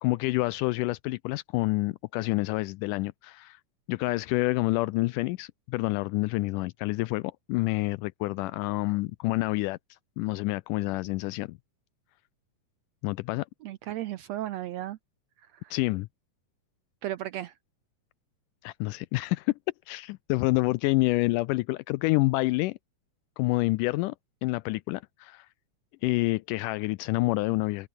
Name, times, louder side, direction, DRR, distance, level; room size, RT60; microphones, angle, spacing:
voice 1, 0.0-3.6 3.9-9.8 10.2-11.6 13.0-13.5 15.7-16.1 18.6-19.5 19.9-22.8 23.4-24.1 24.4-25.5 26.0-27.9, left 21 dB, 80° left, 2.1 m, -28 dB
voice 2, 13.6-15.0 15.4-15.7 17.0-17.5, right 13 dB, 80° right, 1.5 m, -35 dB
omnidirectional pair, 3.8 m